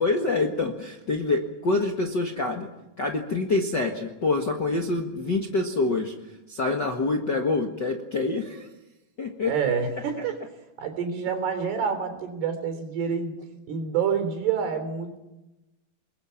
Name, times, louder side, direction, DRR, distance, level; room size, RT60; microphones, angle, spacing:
voice 1, 0.0-2.7 3.0-6.1 6.5-8.7 9.2-9.5, left 3 dB, 50° left, 2 dB, 1.2 m, -26 dB
voice 2, 9.5-10.4 10.8-13.4 13.7-15.2, right 7 dB, 85° right, 7 dB, 5.7 m, -27 dB
29.5 x 21.5 x 5.9 m, 0.97 s
omnidirectional pair, 4.6 m